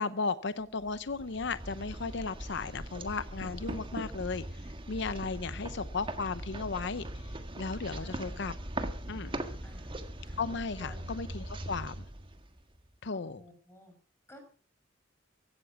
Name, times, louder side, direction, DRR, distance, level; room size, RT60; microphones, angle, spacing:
voice 1, 0.0-4.4 4.9-7.1 7.6-8.5 9.1-9.3 10.4-12.0 13.0-13.4, left 4 dB, 70° left, 14 dB, 0.7 m, -35 dB
sound 1, 0.8-12.9, right 1 dB, 30° right, 1.6 m, -41 dB
Door, 3.1-4.4, right 1 dB, 50° right, 2.9 m, -44 dB
voice 2, 5.2-5.7 8.0-8.4 9.6-10.0 10.3-10.4 10.8-11.1 13.1-14.0 14.3-14.4, equal, 15° left, 5 dB, 5.2 m, -54 dB
16.0 x 12.5 x 6.0 m, 0.41 s
head